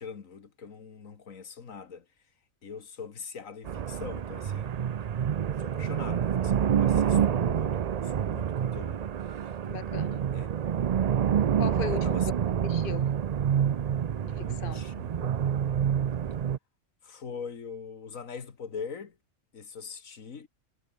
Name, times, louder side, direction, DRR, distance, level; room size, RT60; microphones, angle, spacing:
voice 1, 0.0-2.1 2.6-9.5 10.3-10.5 11.9-12.3 14.3-15.6 17.0-19.2 19.5-20.5, left 6 dB, 80° left, 2.1 m, -43 dB
sound 1, 3.6-16.6, right 8 dB, 75° right, 0.3 m, -27 dB
voice 2, 9.7-10.2 11.6-12.2 12.6-13.1 14.2-14.8, left 7 dB, 45° left, 1.3 m, -37 dB
omnidirectional pair, 1.4 m